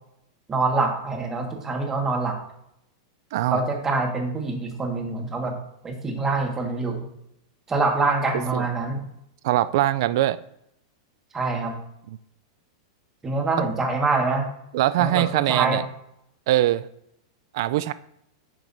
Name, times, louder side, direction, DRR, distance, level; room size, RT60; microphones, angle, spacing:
voice 1, 0.5-2.4 3.5-5.5 5.8-7.0 7.7-9.0 11.3-11.7 13.2-14.5 15.0-15.8, right 3 dB, 20° right, 1.5 m, -25 dB
voice 2, 3.3-3.6 8.5-8.7 9.4-10.4 14.7-15.8 16.5-16.9 17.5-17.9, right 14 dB, 60° right, 0.3 m, -22 dB
9.1 x 5.9 x 2.6 m
hypercardioid pair, 115°, 2 cm